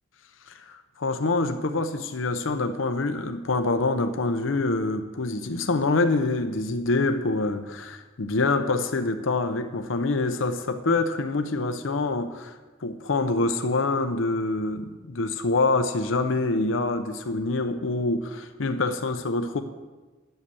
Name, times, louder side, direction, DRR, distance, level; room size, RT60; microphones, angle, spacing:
voice 1, 0.5-19.6, left 3 dB, 80° left, 8 dB, 0.7 m, -26 dB
11.0 x 7.9 x 6.9 m, 1.3 s
head